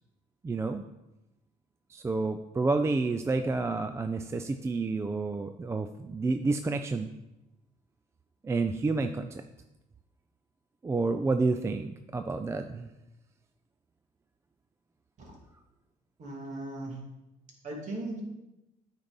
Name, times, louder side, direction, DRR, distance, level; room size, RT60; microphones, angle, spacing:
voice 1, 0.4-0.8 1.9-7.1 8.4-9.4 10.8-12.9, right 3 dB, 15° right, 8 dB, 0.3 m, -29 dB
voice 2, 16.2-17.0 17.6-18.2, right 2 dB, 45° right, -1 dB, 2.2 m, -38 dB
8.8 x 4.0 x 5.2 m, 0.96 s
cardioid pair, 110°, 17 cm